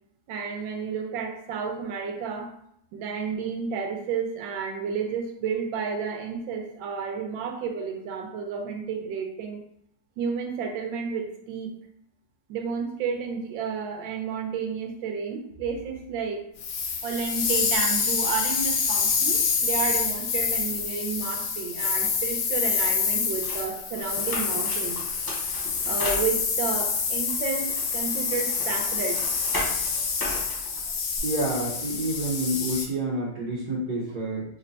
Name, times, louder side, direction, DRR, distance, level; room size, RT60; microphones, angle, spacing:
voice 1, 0.3-2.5 2.9-9.6 10.2-11.7 12.5-16.4 17.0-25.0 25.8-29.2, right 6 dB, 85° right, 3 dB, 1.4 m, -31 dB
sound 1, 16.6-32.9, left 5 dB, 75° left, 0.7 m, -27 dB
sound 2, 23.4-26.8 27.3-31.2, equal, 30° left, 0.4 m, -37 dB
voice 2, 31.2-34.4, right 1 dB, 60° right, -7 dB, 1.3 m, -28 dB
3.8 x 2.1 x 3.9 m, 0.72 s
omnidirectional pair, 2.1 m